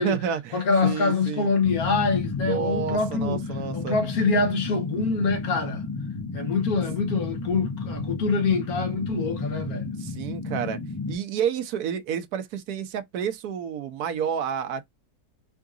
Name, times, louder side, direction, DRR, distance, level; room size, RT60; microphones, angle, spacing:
voice 1, 0.0-1.5 2.4-4.0 10.0-10.8 11.1-14.9, right 8 dB, 85° right, 1.2 m, -30 dB
voice 2, 0.5-3.4 3.7-5.9 6.3-9.9, left 4 dB, 70° left, 1.7 m, -25 dB
sound 1, 1.6-11.2, left 3 dB, 20° left, 1.3 m, -32 dB
3.8 x 3.6 x 2.4 m
omnidirectional pair, 1.6 m